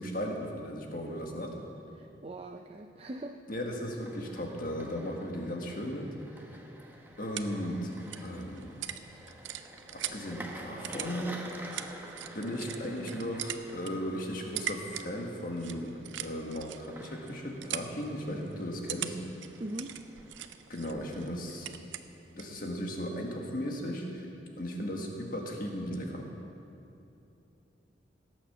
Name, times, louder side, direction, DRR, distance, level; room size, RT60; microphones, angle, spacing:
voice 1, 0.0-1.5 3.5-6.1 7.2-7.9 8.2-8.8 9.9-11.4 12.3-19.2 20.7-21.7 22.3-24.3 24.6-26.2, equal, 50° left, 1 dB, 1.8 m, -36 dB
voice 2, 1.9-3.4 19.6-20.0, right 1 dB, 30° right, 4 dB, 0.5 m, -41 dB
sound 1, 3.7-20.7, right 1 dB, 10° right, 1.0 m, -49 dB
sound 2, 6.7-22.6, right 10 dB, 85° right, 0.6 m, -43 dB
17.0 x 8.9 x 6.9 m, 2.9 s
head